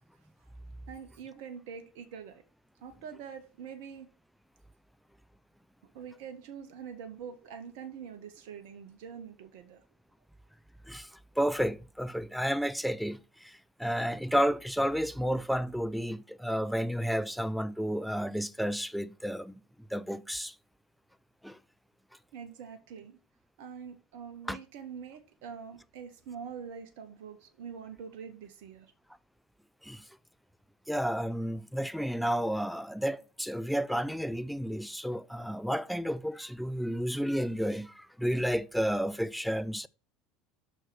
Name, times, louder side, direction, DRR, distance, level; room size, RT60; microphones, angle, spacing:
voice 1, 0.9-2.4 2.8-4.1 5.9-9.8 22.3-23.2 23.6-28.9, right 7 dB, 60° right, 0.8 m, -44 dB
voice 2, 11.4-19.5 19.9-20.5 21.4-21.6 24.5-24.6 29.8-30.0 30.9-39.9, equal, ahead, 0.5 m, -31 dB
6.1 x 4.5 x 6.1 m
figure-of-eight pair, 75°, 0 cm